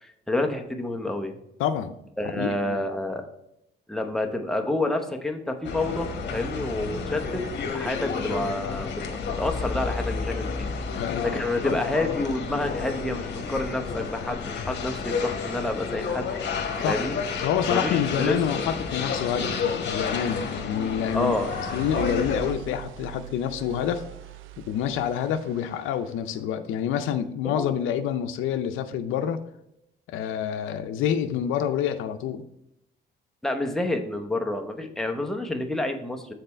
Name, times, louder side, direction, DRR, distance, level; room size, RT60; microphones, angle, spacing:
voice 1, 0.0-1.4 2.2-3.3 3.9-9.0 9.4-10.7 11.2-16.3 16.8-17.2 17.7-18.4 21.1-21.5 27.4-27.8 33.4-36.3, left 2 dB, ahead, 4 dB, 0.8 m, -29 dB
voice 2, 1.6-1.9 2.3-2.8 10.6-11.3 11.6-11.8 16.8-17.0 17.4-21.3 21.6-24.0 24.7-29.4 30.1-32.4, left 9 dB, 90° left, 10 dB, 0.5 m, -27 dB
sound 1, 5.6-22.5, left 5 dB, 60° left, 1.1 m, -30 dB
sound 2, 20.2-26.2, right 13 dB, 90° right, 0.4 m, -42 dB
6.7 x 4.2 x 4.4 m, 0.82 s
cardioid pair, 90°, 20 cm